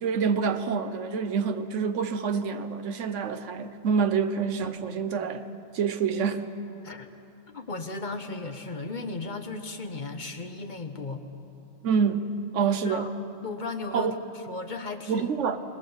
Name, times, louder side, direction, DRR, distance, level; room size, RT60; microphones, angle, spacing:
voice 1, 0.0-5.5 5.7-6.5 11.8-13.1 13.9-14.1 15.1-15.6, right 6 dB, 75° right, 9 dB, 1.3 m, -27 dB
voice 2, 7.5-11.2 12.6-13.1 13.4-14.1 14.5-15.3, left 3 dB, 40° left, 6 dB, 1.2 m, -35 dB
21.0 x 19.5 x 7.1 m, 2.8 s
omnidirectional pair, 1.3 m